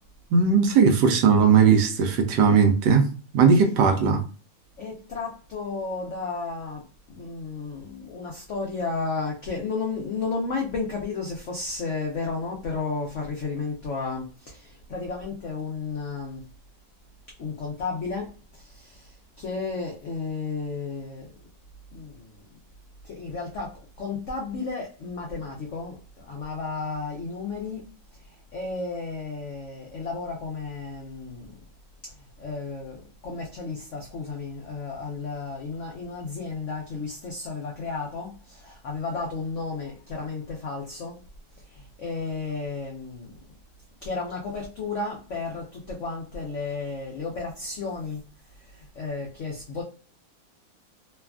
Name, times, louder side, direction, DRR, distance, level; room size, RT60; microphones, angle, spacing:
voice 1, 0.3-4.2, right 5 dB, 75° right, 1.1 m, -18 dB
voice 2, 4.8-16.5 17.4-21.3 21.9-22.4 23.0-27.9 28.2-31.6 32.0-41.2 41.7-43.3 44.0-48.2 48.5-49.8, left 4 dB, 80° left, 0.6 m, -33 dB
3.2 x 2.2 x 2.3 m
omnidirectional pair, 2.0 m